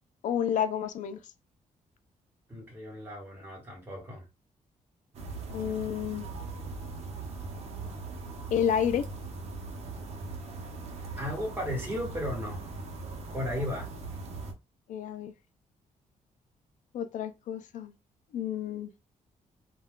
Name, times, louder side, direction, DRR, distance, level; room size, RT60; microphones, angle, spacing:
voice 1, 0.2-1.2 5.5-6.3 8.5-9.0 14.9-15.3 16.9-17.9 18.3-18.9, left 9 dB, 70° left, 0.4 m, -30 dB
voice 2, 2.5-4.2 11.2-12.6 13.3-13.9, left 1 dB, 15° right, 1.2 m, -35 dB
sound 1, 5.1-14.5, right 3 dB, 55° right, 0.7 m, -40 dB
2.3 x 2.2 x 3.5 m
wide cardioid pair, 175°, 13 cm